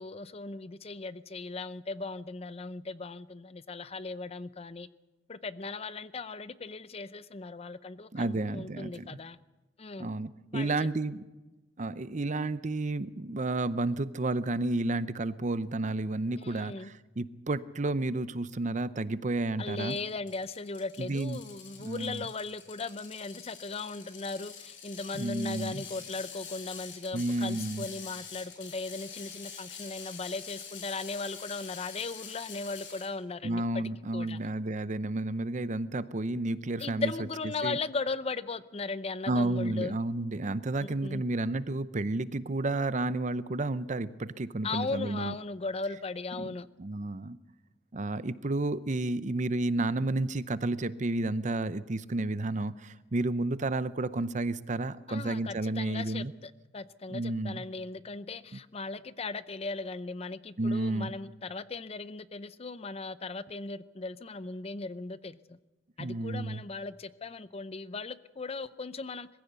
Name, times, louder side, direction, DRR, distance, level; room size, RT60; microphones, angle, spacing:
voice 1, 0.0-4.9 5.3-9.4 9.8-10.1 10.5-10.9 16.4-16.9 19.6-34.4 36.8-40.0 40.8-41.2 44.6-46.7 55.1-65.6 66.0-69.3, left 3 dB, 30° left, 15 dB, 0.6 m, -38 dB
voice 2, 8.1-9.2 10.0-11.2 11.8-20.0 21.0-21.4 21.8-22.2 25.1-25.8 27.1-27.9 33.4-37.1 37.6-37.8 39.3-45.3 46.4-46.5 46.8-47.4 47.9-56.3 57.1-57.6 60.6-61.1 66.0-66.6, right 2 dB, 40° right, 15 dB, 0.6 m, -31 dB
Ratchet pawl, 19.9-33.1, left 7 dB, 85° left, 4.6 m, -46 dB
21.5 x 15.5 x 8.2 m, 1.1 s
head